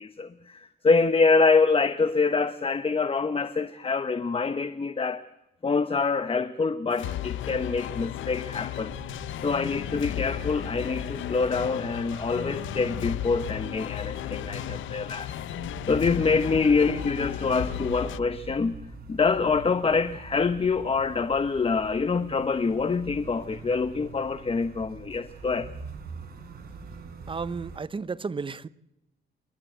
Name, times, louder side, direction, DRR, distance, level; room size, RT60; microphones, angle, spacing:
voice 1, 0.0-5.2 5.6-8.9 9.4-15.3 15.9-18.8 19.1-25.7, left 4 dB, 30° left, 1.1 m, -25 dB
sound 1, 6.9-18.2, left 13 dB, 80° left, 0.7 m, -35 dB
sound 2, 8.9-27.8, right 3 dB, 50° right, 4.2 m, -43 dB
voice 2, 27.3-28.7, right 4 dB, 25° right, 0.8 m, -33 dB
29.0 x 12.0 x 8.0 m
cardioid pair, 90°, 20 cm